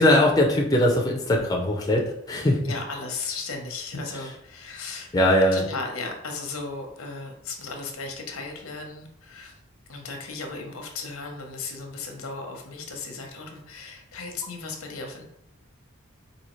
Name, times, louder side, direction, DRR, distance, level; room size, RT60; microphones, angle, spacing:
voice 1, 0.0-2.6 5.1-5.6, left 1 dB, 20° left, -1 dB, 0.4 m, -20 dB
voice 2, 2.6-5.1 5.5-9.6 9.9-15.2, left 3 dB, 85° left, 3 dB, 0.8 m, -35 dB
4.1 x 2.7 x 3.0 m, 0.73 s
head